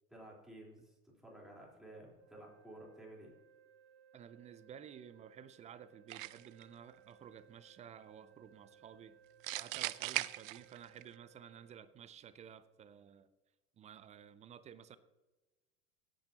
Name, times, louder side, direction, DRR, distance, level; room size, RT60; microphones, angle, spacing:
voice 1, 0.1-3.3, right 1 dB, ahead, -4 dB, 3.9 m, -54 dB
sound 1, 2.1-11.8, right 8 dB, 35° right, 2.1 m, -65 dB
voice 2, 4.1-9.2 9.6-13.3 13.8-15.0, right 8 dB, 15° right, 15 dB, 0.4 m, -54 dB
sound 2, 6.1-6.6 9.4-11.0, right 17 dB, 60° right, 0.5 m, -39 dB
16.5 x 9.0 x 2.9 m, 1.1 s
hypercardioid pair, 85°, 44 cm